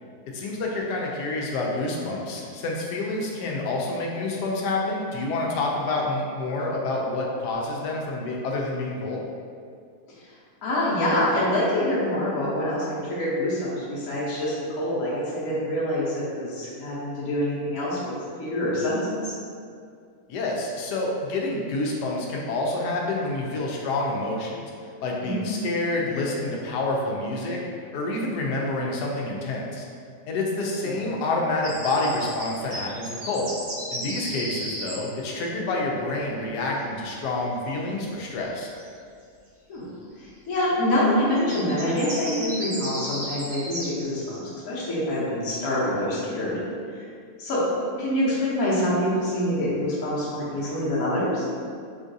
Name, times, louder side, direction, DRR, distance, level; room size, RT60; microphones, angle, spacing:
voice 1, 0.3-9.2 20.3-24.7 25.0-27.6 27.9-29.8 30.3-33.5 33.9-38.7, left 2 dB, 90° left, -1 dB, 1.2 m, -28 dB
voice 2, 10.6-18.1 18.4-19.3 25.2-25.4 30.8-31.0 39.7-39.8 40.2-46.6 46.9-47.0 47.4-47.6 48.0-51.4, left 1 dB, 65° left, -8 dB, 1.2 m, -26 dB
sound 1, 31.6-34.9 38.8-38.9 41.3-44.4, right 1 dB, 85° right, 1.7 m, -34 dB
3.6 x 2.4 x 2.6 m, 2.3 s
omnidirectional pair, 1.7 m